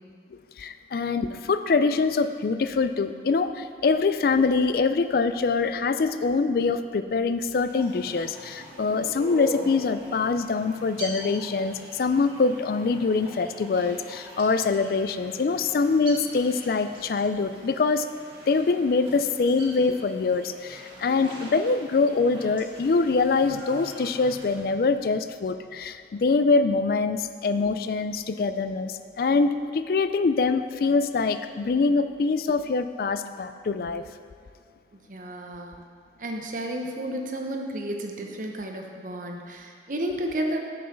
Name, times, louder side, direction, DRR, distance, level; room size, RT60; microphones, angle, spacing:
voice 1, 0.3-18.1 18.5-34.0, left 4 dB, 55° left, 11 dB, 0.3 m, -24 dB
sound 1, 7.6-24.7, right 1 dB, 30° right, 1.8 m, -43 dB
voice 2, 34.9-35.8 36.2-40.6, right 1 dB, 45° right, 2 dB, 0.8 m, -32 dB
6.8 x 5.5 x 6.7 m, 2.2 s
head